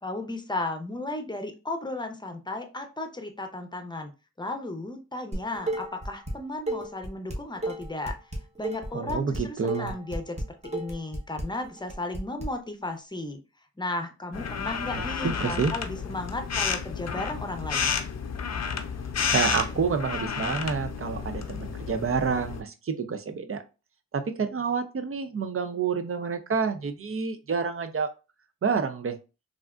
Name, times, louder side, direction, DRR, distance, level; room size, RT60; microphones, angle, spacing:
voice 1, 0.0-4.1 4.4-8.2 8.6-13.4 13.8-18.0, left 2 dB, 15° left, 5 dB, 0.7 m, -34 dB
Dishes pots and pans, 5.3-6.3 6.7-12.5, right 1 dB, 25° right, 0.9 m, -33 dB
voice 2, 8.9-9.9 14.9-15.7 19.3-23.6 24.1-28.1 28.6-29.2, right 5 dB, 50° right, 8 dB, 0.5 m, -28 dB
sound 1, 14.3-22.6, left 6 dB, 65° left, 0.5 m, -31 dB
3.4 x 2.5 x 2.4 m, 0.30 s
cardioid pair, 50°, 29 cm